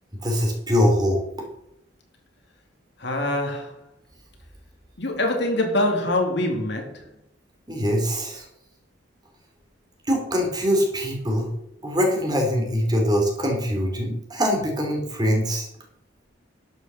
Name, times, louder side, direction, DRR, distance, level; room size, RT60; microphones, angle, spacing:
voice 1, 0.2-1.5 7.7-8.4 10.1-11.5 11.8-15.7, equal, 20° right, 2.8 m, -23 dB
voice 2, 3.0-3.7 5.0-7.0, left 1 dB, 60° left, 2.5 m, -24 dB
12.0 x 6.6 x 6.8 m
head